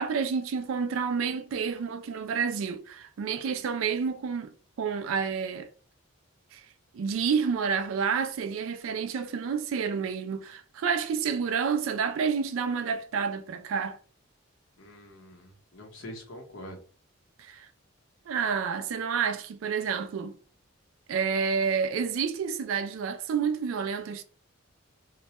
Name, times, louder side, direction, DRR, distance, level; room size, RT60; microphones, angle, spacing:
voice 1, 0.0-4.5 4.8-5.7 6.5-6.6 6.9-14.0 17.4-17.7 18.3-20.3 21.1-24.2, right 6 dB, 75° right, 0.3 m, -29 dB
voice 2, 14.8-16.8, left 1 dB, 65° left, 0.8 m, -44 dB
2.1 x 2.0 x 2.8 m
head